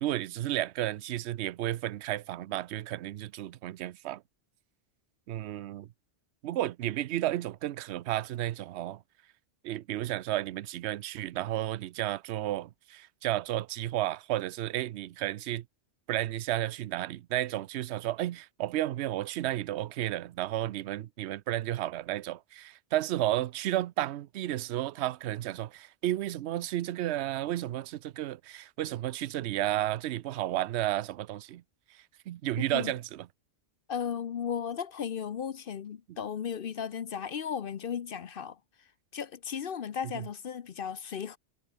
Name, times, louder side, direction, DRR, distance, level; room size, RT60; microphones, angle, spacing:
voice 1, 0.0-4.2 5.3-5.9 6.4-9.0 9.6-15.6 16.1-31.6 32.3-33.3 36.1-36.2 40.1-40.2, right 14 dB, 70° right, 0.8 m, -32 dB
voice 2, 33.9-38.6 39.1-41.4, left 7 dB, 55° left, 0.8 m, -35 dB
omnidirectional pair, 1.3 m